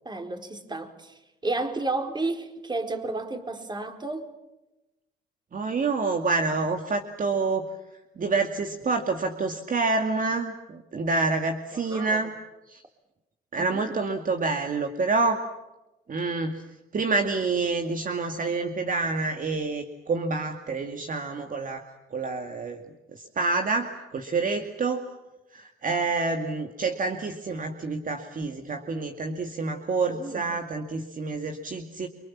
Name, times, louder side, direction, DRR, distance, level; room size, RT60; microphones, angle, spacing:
voice 1, 0.0-4.3 11.7-12.2 13.6-14.0 30.1-30.6, right 2 dB, 20° right, 5 dB, 4.4 m, -32 dB
voice 2, 5.5-7.7 8.2-12.3 12.7-12.8 13.5-15.4 16.1-16.6 16.9-21.8 22.1-22.8 23.1-25.1 25.5-32.1, right 3 dB, 45° right, 5 dB, 2.4 m, -28 dB
29.5 x 24.5 x 7.4 m, 0.98 s
cardioid pair, 90°, 20 cm